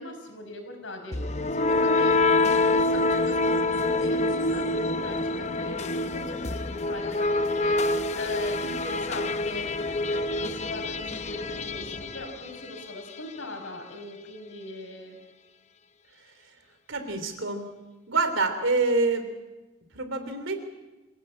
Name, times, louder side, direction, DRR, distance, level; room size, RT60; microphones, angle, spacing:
voice 1, 0.0-9.7 10.1-15.2, left 1 dB, 85° left, 4 dB, 5.4 m, -40 dB
sound 1, 1.1-13.0, left 2 dB, 35° left, 0.8 m, -26 dB
voice 2, 16.9-17.7 18.1-19.3 20.0-20.6, right 3 dB, 85° right, 8 dB, 3.4 m, -26 dB
26.5 x 16.5 x 8.9 m, 1.1 s
head